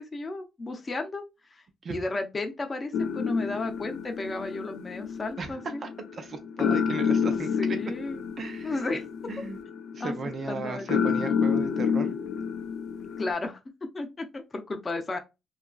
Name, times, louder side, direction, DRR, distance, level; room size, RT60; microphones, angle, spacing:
voice 1, 0.0-5.8 7.6-8.2 8.6-9.0 10.0-10.1 10.5-11.1 13.2-13.6 13.9-15.2, left 2 dB, 30° left, 0.5 m, -33 dB
sound 1, 2.9-13.3, left 6 dB, 85° left, 0.4 m, -29 dB
voice 2, 5.8-7.8 8.4-8.7 9.3-9.6 9.9-12.1, right 3 dB, 45° right, 0.6 m, -36 dB
2.8 x 2.4 x 2.3 m
cardioid pair, 90°, 0 cm